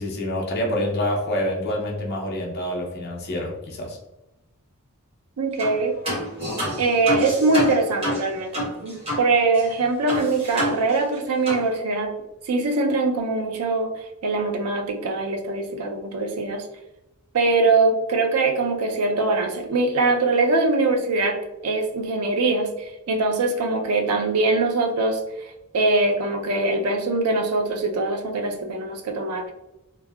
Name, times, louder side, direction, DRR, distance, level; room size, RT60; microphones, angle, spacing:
voice 1, 0.0-4.0, left 1 dB, 45° left, -2 dB, 0.7 m, -27 dB
voice 2, 5.4-6.0 6.8-12.1 12.5-13.9 14.2-16.6 17.3-21.4 21.6-25.2 25.7-29.5, right 3 dB, 85° right, 4 dB, 0.5 m, -22 dB
sound 1, 5.6-5.8 6.0-9.3 9.5-9.6 10.1-11.2 11.4-11.6, left 1 dB, 25° right, 1.1 m, -27 dB
3.2 x 2.1 x 2.3 m, 0.93 s
head